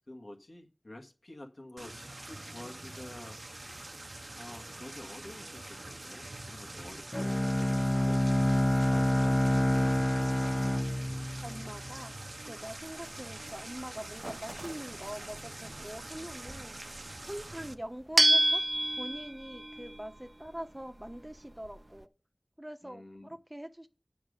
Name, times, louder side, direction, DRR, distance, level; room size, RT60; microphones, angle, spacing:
voice 1, 0.1-3.4 4.4-8.2 8.9-10.6 22.8-23.4, left 1 dB, 85° left, 1.9 m, -49 dB
sound 1, 1.8-17.7, right 2 dB, 70° right, 0.8 m, -45 dB
Bowed string instrument, 7.1-12.1, left 1 dB, 20° left, 0.4 m, -27 dB
voice 2, 11.4-12.1 12.5-16.7 17.2-18.6 18.9-22.1 22.6-23.9, equal, 20° right, 1.1 m, -43 dB
sound 2, 12.6-22.0, right 1 dB, 40° right, 0.7 m, -33 dB
9.5 x 6.2 x 6.5 m
wide cardioid pair, 45°, 0 cm